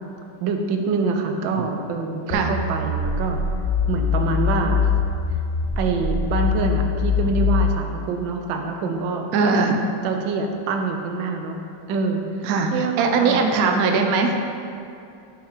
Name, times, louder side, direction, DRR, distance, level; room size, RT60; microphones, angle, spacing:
voice 1, 0.4-3.5 3.9-4.8 5.8-9.3 9.6-9.7 10.0-11.6 11.9-13.5, right 4 dB, 90° right, 4 dB, 1.4 m, -25 dB
sound 1, 2.3-7.8, left 5 dB, 65° left, 0.6 m, -23 dB
voice 2, 9.3-9.8 12.4-14.4, right 4 dB, 65° right, 3 dB, 1.0 m, -20 dB
5.7 x 5.6 x 5.0 m, 2.6 s
omnidirectional pair, 2.0 m